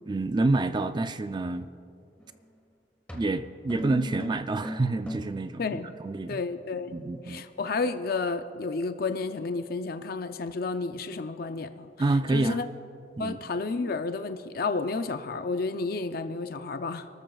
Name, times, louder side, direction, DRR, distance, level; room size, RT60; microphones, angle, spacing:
voice 1, 0.1-1.7 3.1-6.4 6.9-7.4 12.0-12.6 13.2-13.4, right 2 dB, 25° right, 10 dB, 0.4 m, -28 dB
sound 1, 2.2-2.4 3.1-5.5, equal, 10° left, 1.6 m, -37 dB
voice 2, 5.6-5.9 6.3-6.9 7.2-11.9 12.3-12.6 13.2-17.1, left 4 dB, 55° left, 8 dB, 0.5 m, -31 dB
29.0 x 13.5 x 2.4 m, 2.6 s
head